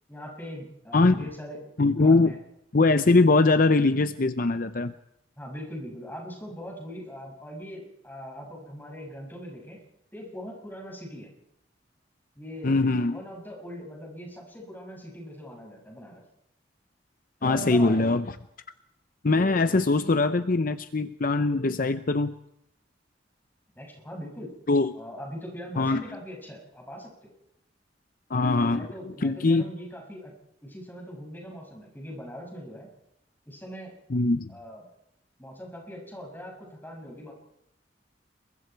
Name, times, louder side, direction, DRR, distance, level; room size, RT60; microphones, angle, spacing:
voice 1, 0.1-1.6 1.9-2.4 5.4-9.8 10.1-11.3 12.4-12.8 13.1-16.2 17.4-18.1 23.7-24.5 24.9-27.3 28.3-30.3 30.6-32.9 33.5-33.9 34.5-34.8 35.4-37.3, equal, 10° left, 0 dB, 6.5 m, -41 dB
voice 2, 0.9-1.2 1.8-2.4 2.7-4.9 12.6-13.2 17.4-18.3 19.2-22.3 24.7-25.0 25.8-26.0 28.3-28.9 29.2-29.7 34.1-34.5, left 3 dB, 50° left, 11 dB, 0.7 m, -22 dB
28.0 x 23.0 x 4.7 m, 0.81 s
head